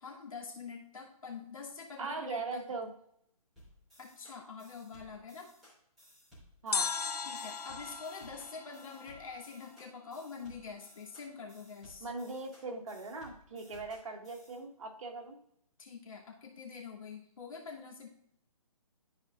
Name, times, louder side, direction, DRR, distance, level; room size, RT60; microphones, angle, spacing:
voice 1, 0.0-2.6 4.0-5.5 7.2-12.1 15.8-18.1, left 5 dB, 60° left, -2 dB, 2.6 m, -46 dB
voice 2, 2.0-2.9 6.6-6.9 12.0-15.4, right 3 dB, 55° right, 2 dB, 1.6 m, -40 dB
sound 1, 3.6-14.6, equal, ahead, 3.0 m, -59 dB
sound 2, 6.7-9.8 10.1-10.2, left 6 dB, 85° left, 0.7 m, -38 dB
13.5 x 4.8 x 2.5 m, 0.71 s
hypercardioid pair, 165°, 20 cm